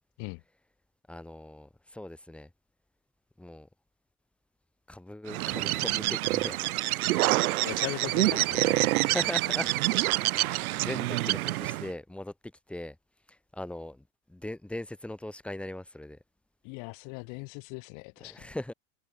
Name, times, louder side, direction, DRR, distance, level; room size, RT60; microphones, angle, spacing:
voice 1, 1.1-2.5 3.4-3.7 4.9-6.6 8.3-8.4 9.0-9.7 10.3-13.0 13.3-16.2 18.2-18.7, left 1 dB, 5° left, 7.5 m, -39 dB
Bird, 5.3-11.9, right 17 dB, 70° right, 1.4 m, -27 dB
voice 2, 7.6-8.9 16.6-18.5, left 37 dB, 40° left, 3.1 m, -39 dB
supercardioid pair, 170°, 44 cm